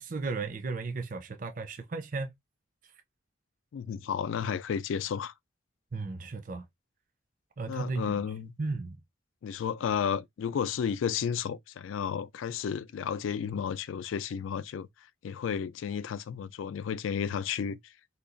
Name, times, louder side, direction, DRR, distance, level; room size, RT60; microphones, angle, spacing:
voice 1, 0.0-2.3 5.9-6.7 7.6-8.2 8.6-9.0, right 3 dB, 40° right, 0.5 m, -35 dB
voice 2, 3.7-5.3 7.7-8.5 9.4-14.9 15.2-17.9, left 7 dB, 80° left, 0.3 m, -32 dB
2.9 x 2.3 x 3.8 m
head